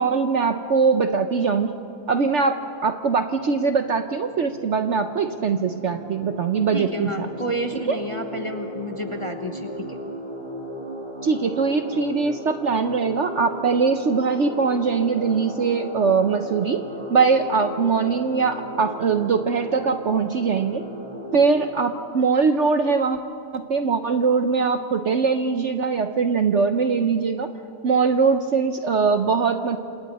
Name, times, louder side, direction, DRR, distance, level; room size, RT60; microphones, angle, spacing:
voice 1, 0.0-1.8 2.1-7.3 7.9-8.0 11.2-16.8 17.1-20.8 21.3-23.2 23.5-27.5 27.8-29.8, right 5 dB, 55° right, 7 dB, 0.9 m, -21 dB
sound 1, 3.1-21.6, equal, 25° right, 2.6 m, -36 dB
voice 2, 6.7-10.0, equal, 20° left, 4 dB, 1.0 m, -30 dB
27.5 x 27.5 x 4.2 m, 2.7 s
omnidirectional pair, 1.7 m